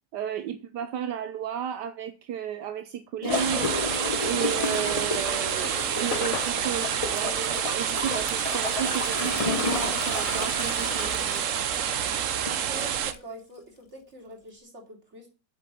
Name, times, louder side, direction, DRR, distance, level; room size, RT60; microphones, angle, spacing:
voice 1, 0.1-11.4, right 9 dB, 75° right, 1.3 m, -33 dB
Gurgling / Toilet flush, 3.2-12.6 13.1-13.2, left 3 dB, 30° left, 0.8 m, -32 dB
sound 1, 3.3-13.1, right 9 dB, 55° right, 1.0 m, -28 dB
sound 2, 4.7-9.4 9.7-11.7, left 10 dB, 65° left, 0.7 m, -41 dB
voice 2, 12.7-15.3, right 1 dB, 40° right, 3.4 m, -44 dB
8.5 x 7.6 x 7.6 m
omnidirectional pair, 1.9 m